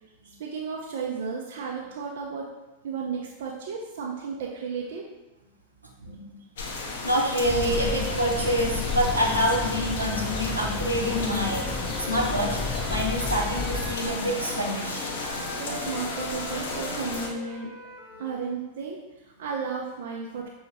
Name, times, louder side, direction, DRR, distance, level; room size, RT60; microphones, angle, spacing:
voice 1, 0.2-2.5 2.8-5.0 15.2-17.7 18.2-20.5, right 5 dB, 55° right, -1 dB, 0.5 m, -34 dB
voice 2, 6.0-6.3 7.0-15.1, equal, 85° right, -2 dB, 0.8 m, -27 dB
sound 1, 6.6-17.3, left 3 dB, 60° left, 0.6 m, -33 dB
sound 2, 7.4-14.0, left 3 dB, 15° left, 0.4 m, -33 dB
Wind instrument woodwind instrument, 10.9-18.4, right 1 dB, 15° right, 0.9 m, -43 dB
6.1 x 2.8 x 2.7 m, 1.1 s
figure-of-eight pair, 90°, 0 cm